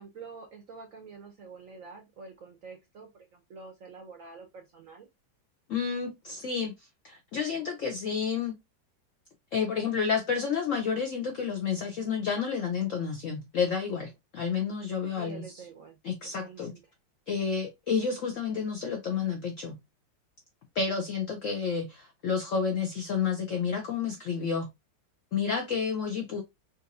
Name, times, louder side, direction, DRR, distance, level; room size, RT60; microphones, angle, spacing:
voice 1, 0.0-5.1 15.2-16.0 16.4-16.8, right 4 dB, 65° right, 0.8 m, -47 dB
voice 2, 5.7-6.7 7.0-8.6 9.5-15.4 16.0-16.7 17.3-19.8 20.7-24.7 25.3-26.4, left 6 dB, 75° left, 0.7 m, -30 dB
4.0 x 2.6 x 2.5 m
omnidirectional pair, 2.1 m